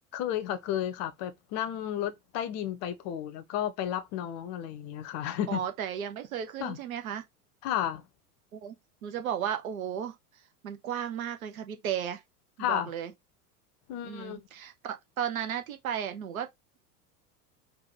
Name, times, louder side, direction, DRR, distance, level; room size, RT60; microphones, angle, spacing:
voice 1, 0.1-5.6 6.6-6.8 7.6-8.0 12.6-12.9 13.9-14.5, left 11 dB, 35° left, 0.7 m, -32 dB
voice 2, 5.5-7.2 8.5-8.7 9.0-10.2 10.6-12.2 12.6-13.1 14.0-16.5, right 9 dB, 60° right, 1.0 m, -34 dB
4.5 x 2.4 x 4.1 m
figure-of-eight pair, 80°, 47 cm